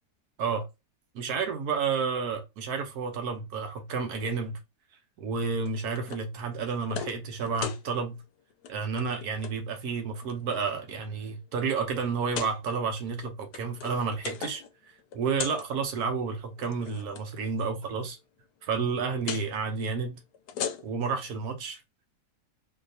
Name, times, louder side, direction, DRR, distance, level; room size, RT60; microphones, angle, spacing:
voice 1, 1.1-4.6 5.2-8.2 8.7-14.6 15.1-18.2 18.6-20.2 20.8-21.8, right 5 dB, 70° right, 1.2 m, -31 dB
sound 1, 5.7-6.3 6.6-7.2 7.5-7.8 8.5-8.7 9.0-9.5 10.2-10.7 11.3-11.4 12.2-12.6 13.3-14.7 15.0-15.7 16.5-17.2 19.2-19.5 20.3-21.1, left 8 dB, 75° left, 1.1 m, -37 dB
3.8 x 2.8 x 2.7 m
omnidirectional pair, 1.8 m